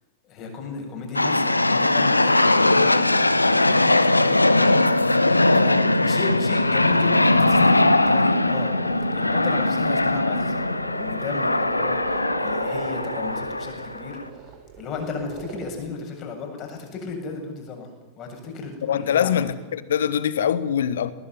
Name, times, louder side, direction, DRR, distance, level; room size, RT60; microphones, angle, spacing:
voice 1, 0.2-8.7 9.1-14.2 14.8-17.9 18.2-19.5, left 5 dB, 35° left, 7.6 m, -35 dB
sound 1, 1.1-14.3, left 2 dB, 85° left, 1.0 m, -20 dB
sound 2, 6.6-15.7, right 7 dB, 45° right, 5.0 m, -38 dB
voice 2, 18.8-21.1, left 9 dB, 65° left, 1.5 m, -23 dB
20.5 x 19.5 x 9.5 m
figure-of-eight pair, 90°, 0 cm